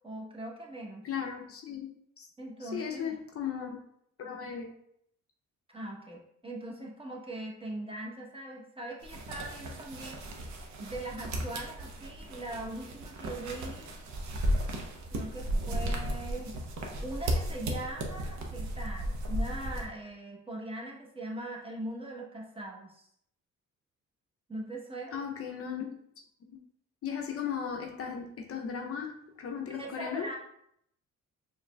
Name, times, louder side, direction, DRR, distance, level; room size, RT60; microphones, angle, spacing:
voice 1, 0.0-1.1 2.4-3.2 5.7-10.2 10.8-13.9 15.1-16.6 17.0-23.1 24.5-25.2 29.7-30.4, right 1 dB, 20° right, -2 dB, 0.9 m, -41 dB
voice 2, 1.0-1.9 2.2-2.3 2.6-3.8 4.2-4.7 25.1-26.0 26.5-26.6 27.0-30.3, left 7 dB, 50° left, 2 dB, 0.6 m, -36 dB
sound 1, 9.0-19.9, right 1 dB, 70° right, 0.8 m, -35 dB
4.8 x 3.0 x 2.2 m, 0.72 s
cardioid pair, 90°, 30 cm